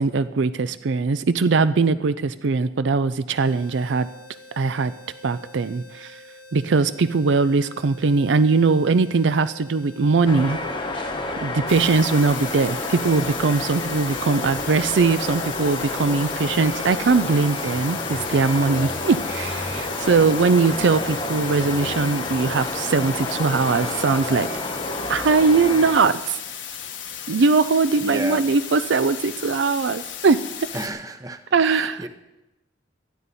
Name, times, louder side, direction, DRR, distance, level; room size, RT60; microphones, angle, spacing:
voice 1, 0.0-4.1 4.6-4.9 5.2-6.1 6.5-10.6 11.4-24.5 25.1-26.4 27.3-30.4 31.5-32.1, right 4 dB, 75° right, 13 dB, 0.5 m, -20 dB
sound 1, 3.3-23.1, left 2 dB, 60° right, 2.2 m, -46 dB
sound 2, 10.3-26.0, left 2 dB, 25° left, 1.1 m, -30 dB
sound 3, 11.7-30.9, left 8 dB, 85° left, 1.6 m, -36 dB
voice 2, 28.0-28.4 30.7-32.1, right 2 dB, 20° right, 8 dB, 0.8 m, -32 dB
18.5 x 12.5 x 4.2 m, 1.0 s
head